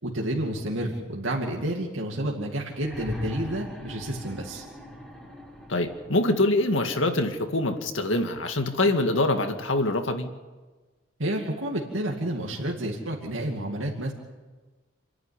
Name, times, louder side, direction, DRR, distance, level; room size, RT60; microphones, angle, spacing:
voice 1, 0.0-4.6 11.2-14.1, right 1 dB, 90° right, -1 dB, 2.4 m, -30 dB
sound 1, 2.7-6.5 7.8-7.9, left 1 dB, 5° left, 4.5 m, -39 dB
voice 2, 5.7-10.3, left 2 dB, 80° left, 5 dB, 2.0 m, -24 dB
28.0 x 11.0 x 9.9 m, 1.3 s
head